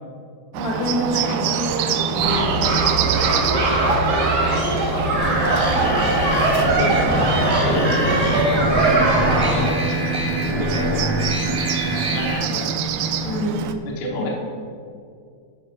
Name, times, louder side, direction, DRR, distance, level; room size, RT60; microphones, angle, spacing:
Bird, 0.5-13.8, right 7 dB, 85° right, 2.4 m, -26 dB
voice 1, 0.6-2.7 13.2-13.7 14.2-14.3, left 1 dB, 85° left, -5 dB, 4.3 m, -26 dB
sound 1, 2.2-9.7, right 2 dB, 50° right, 1.2 m, -20 dB
voice 2, 4.9-8.5 9.3-9.8 10.4-11.3 11.9-12.7 13.8-14.3, left 1 dB, 55° left, -2 dB, 1.4 m, -30 dB
sound 2, 5.2-12.3, right 1 dB, 20° right, 0.8 m, -26 dB
12.0 x 5.9 x 5.0 m, 2.4 s
omnidirectional pair, 4.5 m